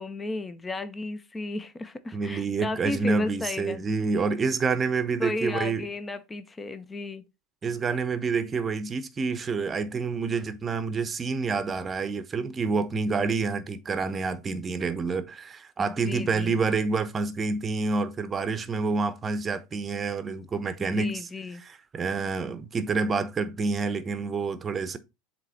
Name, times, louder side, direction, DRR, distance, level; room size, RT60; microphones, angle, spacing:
voice 1, 0.0-3.8 5.2-7.2 15.8-16.6 20.8-21.6, left 2 dB, 15° left, 0.7 m, -34 dB
voice 2, 2.1-5.9 7.6-21.3 21.6-25.0, right 4 dB, 25° right, 0.8 m, -28 dB
7.4 x 3.0 x 4.2 m
hypercardioid pair, 80°, 0 cm